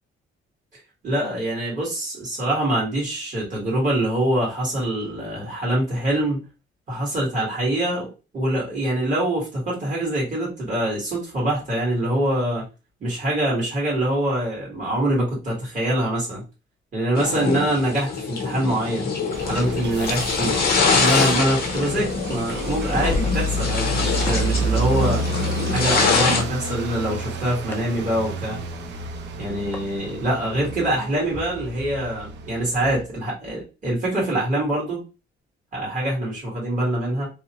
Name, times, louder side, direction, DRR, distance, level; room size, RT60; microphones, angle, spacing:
voice 1, 1.0-6.4 6.9-12.6 13.0-16.4 16.9-19.1 19.4-20.6 21.0-25.2 25.7-28.6 29.4-35.0 35.7-37.3, right 1 dB, 40° right, -4 dB, 1.5 m, -24 dB
sound 1, 17.2-26.4, left 4 dB, 50° left, 0.7 m, -24 dB
sound 2, 19.3-33.0, right 1 dB, 60° right, 0.6 m, -30 dB
sound 3, 22.8-24.6 26.0-26.1 27.7-27.8 29.7-29.8 31.2-31.4, left 1 dB, 10° left, 0.4 m, -32 dB
2.7 x 2.0 x 2.9 m, 0.30 s
cardioid pair, 145°, 21 cm